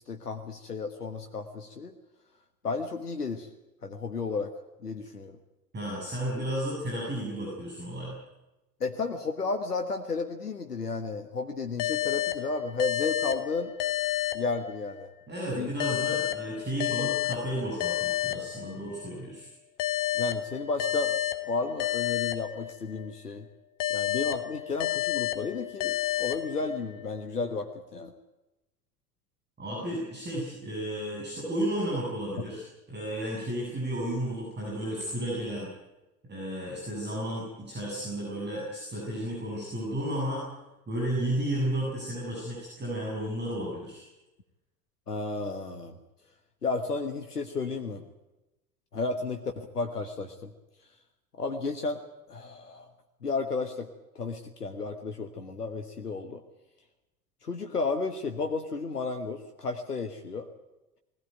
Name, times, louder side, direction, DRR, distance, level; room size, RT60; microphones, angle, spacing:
voice 1, 0.1-1.9 2.6-3.5 3.8-4.5 4.8-5.4 8.8-13.7 14.3-15.1 15.6-15.7 16.1-16.2 20.1-21.2 21.4-23.5 23.9-28.1 45.1-45.9 46.6-48.0 48.9-50.5 51.4-52.0 52.3-52.9 53.2-53.9 54.1-56.4 57.4-60.5, left 4 dB, 85° left, 6 dB, 1.5 m, -33 dB
voice 2, 5.7-8.2 15.3-19.5 29.6-35.7 36.3-40.4 40.9-44.0, right 1 dB, 20° right, -3 dB, 7.7 m, -33 dB
sound 1, 11.8-15.1 15.8-19.1 19.8-23.1 23.8-27.1, left 13 dB, 45° left, 1.5 m, -31 dB
20.5 x 17.0 x 9.1 m, 1.0 s
figure-of-eight pair, 75°, 45 cm